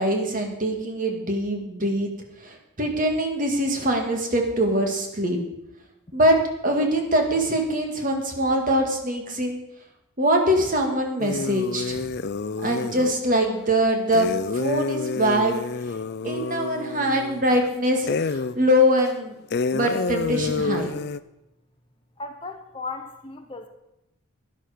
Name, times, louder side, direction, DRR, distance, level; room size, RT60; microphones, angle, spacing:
voice 1, 0.0-2.1 2.4-5.4 6.1-6.4 6.6-9.6 10.2-12.0 12.6-15.5 16.2-19.3 19.7-20.9, equal, 35° right, 3 dB, 1.9 m, -23 dB
sound 1, 11.2-13.2 14.1-17.7 18.1-18.6 19.0-19.1 19.5-21.2, left 4 dB, 50° left, 0.4 m, -28 dB
voice 2, 22.2-23.7, left 3 dB, 25° left, 6 dB, 0.8 m, -36 dB
12.0 x 11.0 x 5.1 m, 0.89 s
head